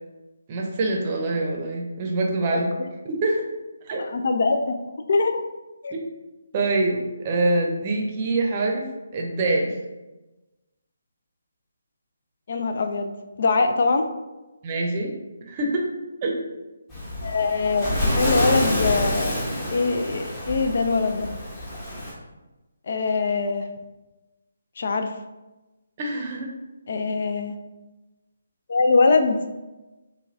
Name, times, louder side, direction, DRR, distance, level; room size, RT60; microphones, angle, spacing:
voice 1, 0.5-2.7 3.0-3.5 3.9-4.1 5.9-6.0 6.5-8.9 9.1-9.7 14.6-15.1 15.4-15.9 16.2-16.4 26.0-26.5, right 2 dB, 30° right, 0 dB, 0.7 m, -25 dB
voice 2, 4.0-4.8 5.1-5.4 5.8-5.9 12.5-13.1 13.4-14.1 17.2-21.3 22.9-23.7 24.8-25.1 26.9-27.6 28.7-29.4, left 3 dB, 55° left, 6 dB, 0.4 m, -23 dB
Waves surf, 16.9-22.1, left 1 dB, 20° left, 1.1 m, -27 dB
5.4 x 2.2 x 2.6 m, 1.1 s
figure-of-eight pair, 145°, 0 cm